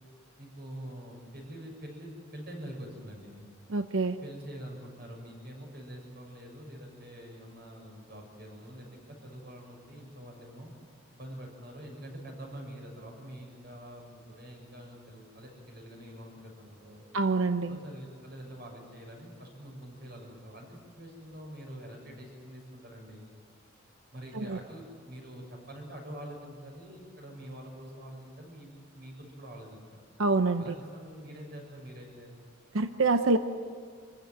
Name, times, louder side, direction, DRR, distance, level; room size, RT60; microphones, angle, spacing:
voice 1, 0.4-3.5 4.2-10.7 11.1-17.1 17.7-23.3 24.1-30.0 30.6-32.4, equal, 50° right, 1 dB, 6.9 m, -45 dB
voice 2, 3.7-4.2 17.1-17.8 24.3-24.6 30.2-30.7 32.7-33.4, right 3 dB, 80° right, 9 dB, 0.8 m, -26 dB
27.0 x 15.5 x 9.6 m, 2.1 s
head